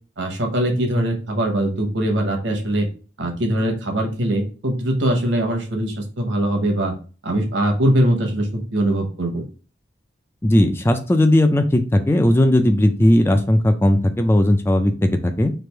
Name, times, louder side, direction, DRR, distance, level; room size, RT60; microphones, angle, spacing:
voice 1, 0.2-2.9 3.2-6.9 7.2-9.4, right 1 dB, 75° right, 2 dB, 1.0 m, -21 dB
voice 2, 10.4-15.5, left 1 dB, 10° left, 7 dB, 0.3 m, -17 dB
3.3 x 2.5 x 4.4 m, 0.37 s
head